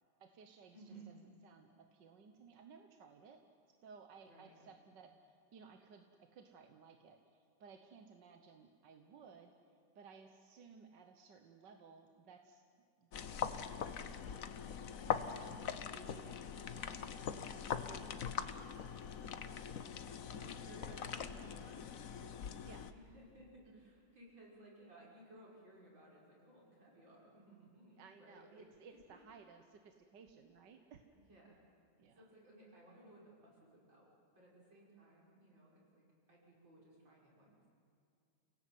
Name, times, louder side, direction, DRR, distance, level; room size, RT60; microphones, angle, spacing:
voice 1, 0.2-0.8 1.4-3.5 3.8-12.6 13.0-13.9 15.1-15.2 15.5-15.6 15.9-18.4 20.6-21.8 22.2-22.3 22.6-22.9 28.0-31.0 32.0-32.3, right 5 dB, 70° right, 5 dB, 1.8 m, -59 dB
voice 2, 0.7-1.1 4.2-4.6 15.0-15.8 19.2-19.4 20.4-21.8 22.8-28.7 29.1-29.2 31.1-31.6 32.2-34.1 34.3-37.7, right 1 dB, 85° right, -4 dB, 6.9 m, -60 dB
sound 1, 13.1-22.9, left 7 dB, 55° left, 1.2 m, -42 dB
29.5 x 18.0 x 9.3 m, 2.5 s
omnidirectional pair, 2.0 m